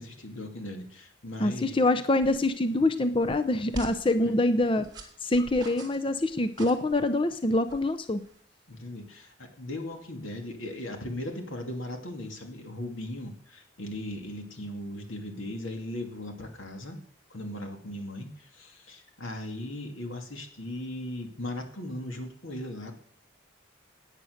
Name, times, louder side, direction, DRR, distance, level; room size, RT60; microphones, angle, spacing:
voice 1, 0.0-1.8 4.2-4.4 8.7-17.0 17.3-23.1, left 1 dB, 85° left, 4 dB, 2.5 m, -38 dB
voice 2, 1.4-4.9 5.2-8.2, left 2 dB, 25° left, 10 dB, 0.6 m, -25 dB
sound 1, 2.2-8.4, right 1 dB, 20° right, 2.5 m, -46 dB
16.5 x 9.2 x 6.5 m, 0.62 s
head